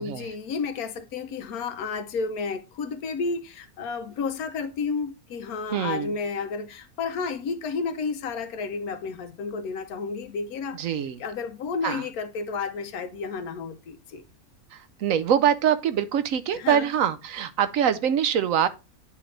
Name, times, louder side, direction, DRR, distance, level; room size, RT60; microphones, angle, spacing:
voice 1, 0.0-10.8 11.2-14.2 16.6-16.9, left 5 dB, 80° left, 1.2 m, -31 dB
voice 2, 5.7-6.1 10.8-11.2 11.8-12.0 14.7-18.7, right 9 dB, 70° right, 1.0 m, -24 dB
9.8 x 3.3 x 3.8 m
omnidirectional pair, 1.6 m